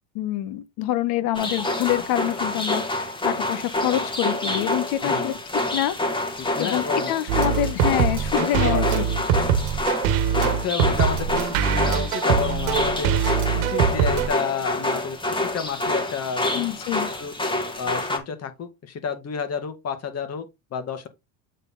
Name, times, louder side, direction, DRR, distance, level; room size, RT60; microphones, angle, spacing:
voice 1, 0.1-5.3 5.7-5.9 6.6-9.0 16.5-17.1, left 13 dB, 65° left, 1.2 m, -26 dB
sound 1, 1.3-18.2, left 1 dB, 10° left, 1.6 m, -27 dB
voice 2, 5.0-5.4 6.6-7.1 8.3-9.2 10.4-13.2 13.5-16.7 17.2-17.3 17.8-20.5 20.7-21.1, left 6 dB, 40° left, 1.9 m, -30 dB
sound 2, 7.3-14.3, right 8 dB, 80° right, 1.3 m, -23 dB
8.1 x 3.9 x 3.8 m
supercardioid pair, 115°, 39 cm